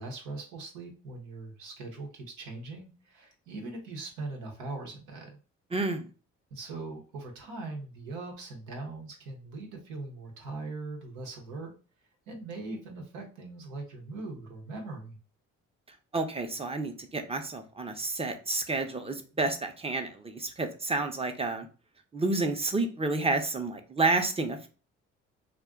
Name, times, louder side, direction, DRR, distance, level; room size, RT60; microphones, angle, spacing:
voice 1, 0.0-5.4 6.5-11.7 12.3-15.2, right 3 dB, 90° right, 2 dB, 0.8 m, -40 dB
voice 2, 5.7-6.1 16.1-21.7 22.1-24.7, right 3 dB, 20° right, 6 dB, 0.6 m, -30 dB
2.4 x 2.2 x 3.6 m, 0.36 s
supercardioid pair, 60°, 31 cm